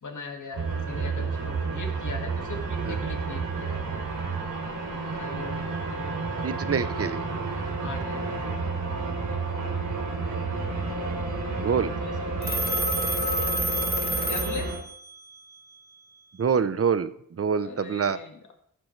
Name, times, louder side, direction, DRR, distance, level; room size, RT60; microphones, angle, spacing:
voice 1, 0.0-3.8 5.0-5.8 7.8-9.0 11.8-12.6 14.3-14.7 17.6-18.5, left 3 dB, 60° left, 3 dB, 2.0 m, -40 dB
sound 1, 0.5-14.8, right 3 dB, 75° right, 3.3 m, -30 dB
voice 2, 6.4-7.2 11.6-11.9 16.4-17.1 17.4-18.2, right 6 dB, 45° right, 13 dB, 0.7 m, -25 dB
Telephone, 12.4-15.2, right 1 dB, 30° right, 1.1 m, -29 dB
13.5 x 12.0 x 3.2 m, 0.66 s
wide cardioid pair, 135°, 33 cm